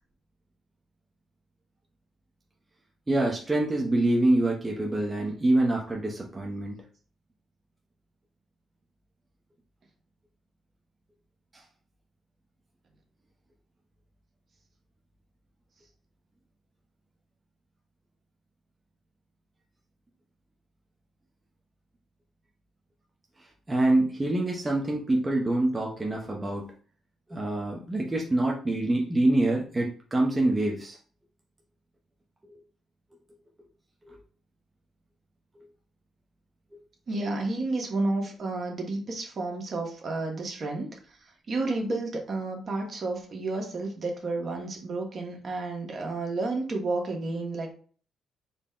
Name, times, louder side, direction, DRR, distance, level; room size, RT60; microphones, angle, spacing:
voice 1, 3.1-6.8 23.7-26.7 27.3-31.0 34.1-34.2, right 1 dB, 20° right, -1 dB, 0.7 m, -25 dB
voice 2, 37.1-40.9 41.5-47.7, right 2 dB, 50° right, 1 dB, 1.1 m, -31 dB
4.0 x 2.1 x 3.6 m, 0.42 s
cardioid pair, 90°, 0 cm